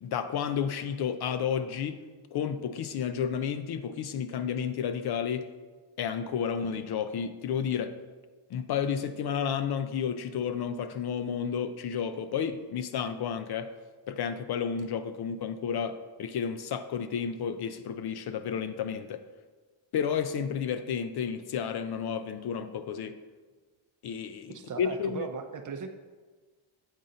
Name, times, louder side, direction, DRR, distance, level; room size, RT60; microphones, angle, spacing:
voice 1, 0.0-2.0 2.3-5.5 6.0-8.0 8.5-13.7 14.1-19.2 19.9-23.2 24.0-25.3, left 7 dB, 55° left, 10 dB, 0.5 m, -31 dB
voice 2, 24.5-25.9, right 5 dB, 40° right, 6 dB, 0.6 m, -38 dB
8.0 x 4.1 x 3.8 m, 1.4 s
cardioid pair, 105°, 49 cm